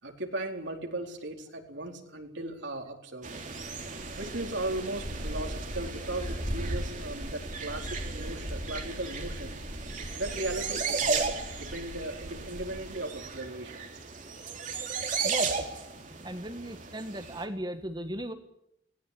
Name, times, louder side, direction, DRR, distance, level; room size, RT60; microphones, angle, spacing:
voice 1, 0.0-3.3 4.2-9.6 10.2-13.8, right 2 dB, 65° right, 2 dB, 4.3 m, -37 dB
sound 1, 3.2-17.4, right 3 dB, 40° right, 3.4 m, -35 dB
voice 2, 15.2-15.7 16.2-18.3, right 1 dB, 20° right, 8 dB, 1.6 m, -37 dB
20.0 x 18.0 x 8.7 m, 0.77 s
head